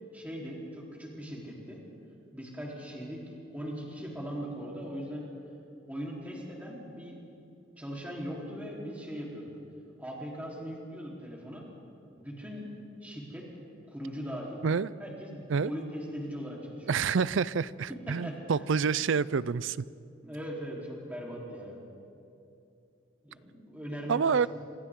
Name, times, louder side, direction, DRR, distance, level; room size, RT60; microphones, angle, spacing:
voice 1, 0.1-1.8 2.3-5.3 5.9-7.2 7.8-9.5 10.0-11.7 12.2-12.7 13.0-13.5 13.9-14.6 15.0-17.0 18.1-18.8 20.2-21.8 23.2-24.5, equal, 5° right, -4 dB, 3.7 m, -40 dB
voice 2, 16.9-19.8 24.1-24.5, right 5 dB, 70° right, 19 dB, 0.4 m, -27 dB
27.5 x 26.0 x 3.7 m, 2.7 s
head